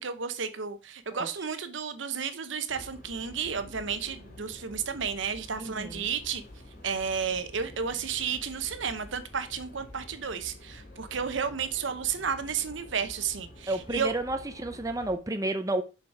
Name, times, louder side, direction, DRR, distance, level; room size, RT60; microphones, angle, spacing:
voice 1, 0.0-6.4 6.8-14.1, right 6 dB, 70° right, 0.8 m, -32 dB
sound 1, 2.7-15.2, left 1 dB, 50° left, 2.4 m, -48 dB
voice 2, 5.6-6.0 13.7-15.8, right 2 dB, 15° right, 0.6 m, -31 dB
6.7 x 4.9 x 4.7 m
head